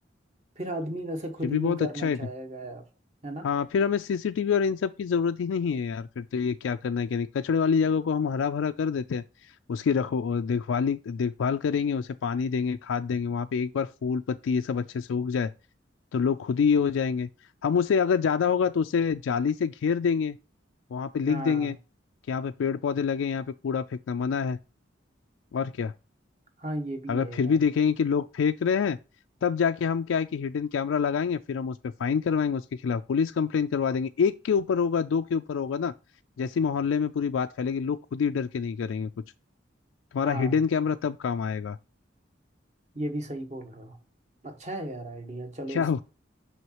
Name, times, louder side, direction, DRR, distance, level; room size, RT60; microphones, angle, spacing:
voice 1, 0.6-2.9 3.2-3.5 21.2-21.7 26.6-27.6 40.2-40.6 42.9-44.0 44.4-46.0, right 1 dB, 35° right, 1.1 m, -35 dB
voice 2, 1.4-2.2 3.4-9.2 9.7-15.5 16.1-17.3 17.6-20.4 20.9-21.7 22.3-24.6 25.5-25.9 27.1-29.0 29.4-35.9 36.4-39.1 40.1-41.8 45.7-46.0, left 6 dB, 85° left, 0.3 m, -26 dB
6.2 x 5.6 x 3.0 m
head